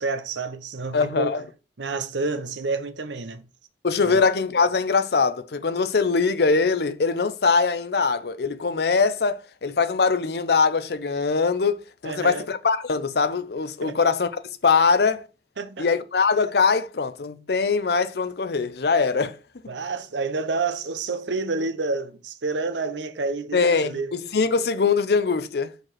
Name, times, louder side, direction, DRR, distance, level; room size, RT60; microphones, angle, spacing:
voice 1, 0.0-1.4 1.8-3.4 4.0-4.2 12.0-12.5 13.8-14.0 15.6-15.9 19.7-24.1, right 3 dB, 85° right, 0.8 m, -29 dB
voice 2, 0.9-1.4 3.8-11.8 12.0-14.3 14.6-15.3 15.8-19.4 23.5-25.7, left 4 dB, 60° left, 0.6 m, -22 dB
5.8 x 5.3 x 4.5 m
head